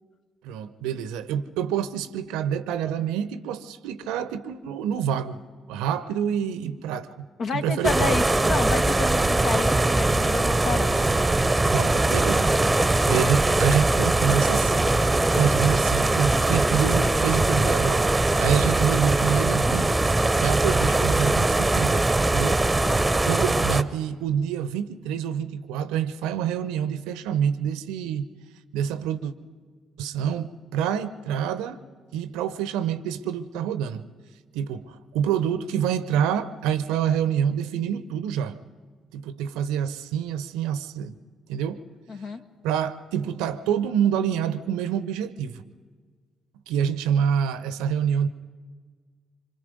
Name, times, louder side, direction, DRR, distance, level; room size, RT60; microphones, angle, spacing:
voice 1, 0.4-5.4 5.7-7.3 7.5-8.2 11.7-12.5 13.1-14.9 15.3-18.1 18.4-20.1 20.4-22.6 23.2-28.3 28.7-29.3 30.0-31.8 32.1-34.0 34.5-38.6 39.1-41.1 41.5-41.8 42.6-45.6 46.7-48.3, right 8 dB, 70° right, 14 dB, 0.8 m, -27 dB
voice 2, 7.4-11.1 22.8-23.0 42.1-42.4, left 4 dB, 50° left, 7 dB, 1.2 m, -30 dB
sound 1, 7.8-23.8, right 2 dB, 15° right, 1.0 m, -21 dB
26.0 x 25.5 x 5.3 m, 1.5 s
figure-of-eight pair, 45°, 0 cm